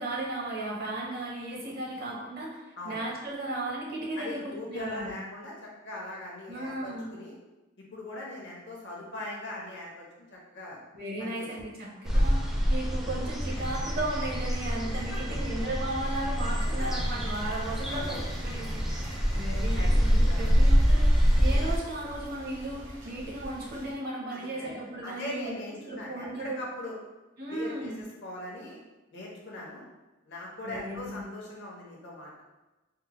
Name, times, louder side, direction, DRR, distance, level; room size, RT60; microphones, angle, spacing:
voice 1, 0.0-5.1 6.5-7.1 10.9-12.4 12.7-18.8 19.3-25.6 25.8-26.6 27.4-28.0 30.6-31.2, right 1 dB, 50° right, -2 dB, 0.8 m, -35 dB
voice 2, 4.1-7.3 7.8-10.8 11.2-11.5 11.8-12.2 15.0-15.2 16.6-16.9 17.9-18.2 19.0-19.1 19.8-19.9 20.3-20.5 21.2-21.3 24.3-24.7 25.0-27.0 27.5-28.8 29.1-29.8 30.2-32.4, left 1 dB, 60° left, -3 dB, 0.8 m, -41 dB
sound 1, 12.1-21.8, equal, ahead, 0.4 m, -26 dB
sound 2, 13.4-21.8, right 1 dB, 90° right, 1.5 m, -48 dB
sound 3, 16.9-23.9, equal, 70° right, 1.1 m, -45 dB
3.6 x 2.1 x 2.9 m, 1.1 s
head